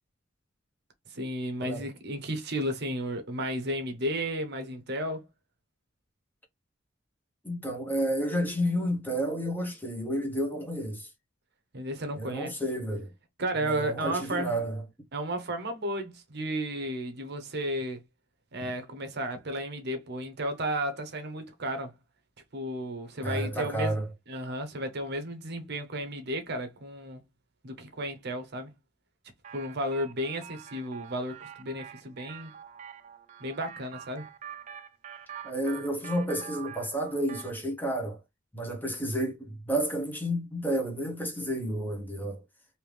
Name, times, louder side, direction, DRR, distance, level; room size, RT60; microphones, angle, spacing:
voice 1, 1.1-5.3 11.7-12.5 13.4-14.6 15.1-18.0 18.5-21.9 22.5-24.0 24.3-27.2 27.6-28.7 29.5-32.5 33.4-34.3, right 1 dB, 55° right, 0.8 m, -33 dB
voice 2, 7.4-11.1 12.1-13.1 13.6-14.8 18.6-18.7 23.2-24.1 35.4-38.2 38.5-42.4, equal, 10° left, 1.0 m, -31 dB
sound 1, 29.4-37.6, right 9 dB, 40° right, 0.4 m, -46 dB
3.4 x 2.7 x 3.2 m
head